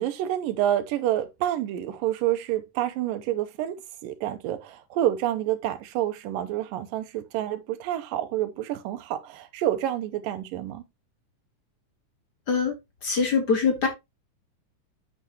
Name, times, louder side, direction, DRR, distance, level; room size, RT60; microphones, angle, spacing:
voice 1, 0.0-10.8, right 12 dB, 90° right, 2.5 m, -28 dB
voice 2, 13.0-13.9, left 5 dB, 55° left, 1.1 m, -23 dB
8.5 x 7.1 x 2.9 m
omnidirectional pair, 3.9 m